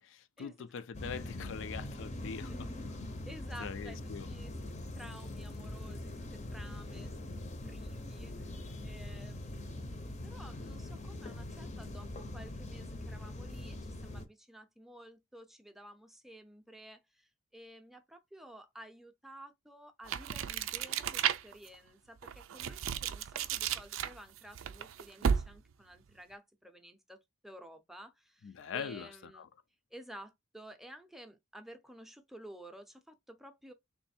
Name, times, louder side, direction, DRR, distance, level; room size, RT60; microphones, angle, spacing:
voice 1, 0.0-2.7 3.6-4.3 28.4-29.5, left 6 dB, 70° left, 0.4 m, -42 dB
sound 1, 0.9-14.3, left 1 dB, 35° left, 0.6 m, -42 dB
voice 2, 3.3-4.0 4.3-4.5 5.0-29.4 29.9-33.7, equal, ahead, 0.6 m, -53 dB
sound 2, 20.0-21.7 22.2-25.7, right 8 dB, 80° right, 0.4 m, -34 dB
3.2 x 2.6 x 4.2 m
head